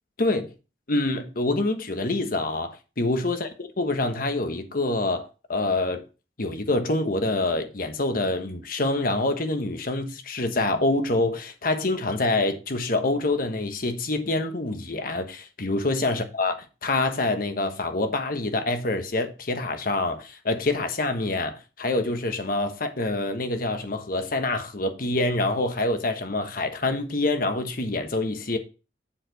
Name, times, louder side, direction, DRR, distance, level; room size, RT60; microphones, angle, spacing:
voice 1, 0.2-0.5 0.9-3.5 3.8-6.0 6.4-16.5 16.8-28.6, left 2 dB, 55° left, 1.2 m, -26 dB
7.4 x 6.7 x 4.0 m
head